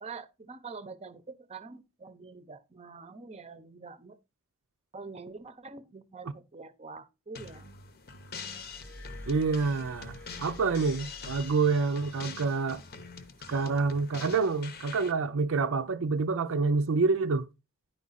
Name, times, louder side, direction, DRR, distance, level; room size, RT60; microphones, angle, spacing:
voice 1, 0.0-4.2 4.9-7.8, right 4 dB, 30° right, 0.8 m, -45 dB
sound 1, 7.3-15.1, left 5 dB, 45° left, 0.9 m, -45 dB
Glass, 8.5-12.1 13.1-13.3, left 1 dB, 5° left, 0.7 m, -48 dB
voice 2, 9.3-12.8 13.5-17.5, right 4 dB, 60° right, 0.6 m, -27 dB
10.5 x 4.8 x 4.1 m
head